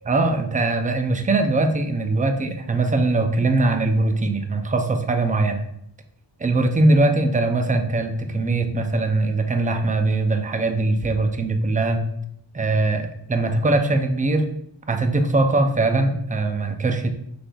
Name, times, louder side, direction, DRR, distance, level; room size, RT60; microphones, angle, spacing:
voice 1, 0.1-5.7 6.4-12.0 12.5-14.5 14.9-17.1, right 2 dB, 20° right, 6 dB, 0.3 m, -21 dB
5.9 x 3.4 x 2.3 m, 0.75 s
wide cardioid pair, 135°, 47 cm